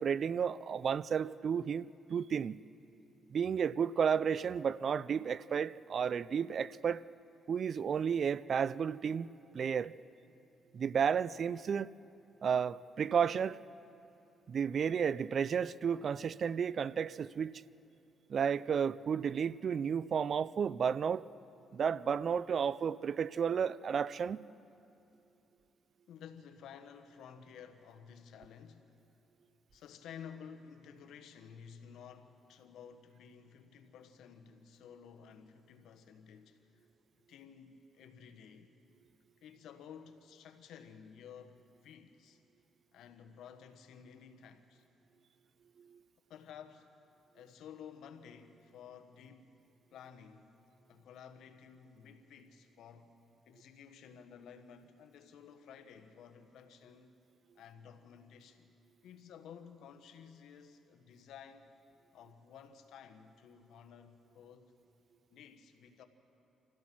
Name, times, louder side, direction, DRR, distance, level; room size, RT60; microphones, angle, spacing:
voice 1, 0.0-2.6 3.3-7.0 7.5-10.0 10.7-11.9 12.4-13.6 14.5-17.5 18.3-21.3 21.7-24.4 45.9-46.0, right 7 dB, 50° right, 0.4 m, -32 dB
voice 2, 26.1-28.9 29.7-36.9 37.3-38.7 39.4-42.4 42.9-44.8 46.3-46.9 47.3-49.6 49.9-50.6 50.9-53.2 53.5-57.1 57.5-58.7 59.0-61.7 62.1-64.7 65.3-66.0, left 7 dB, 80° left, 1.3 m, -53 dB
27.0 x 16.0 x 6.1 m
cardioid pair, 90°, 0 cm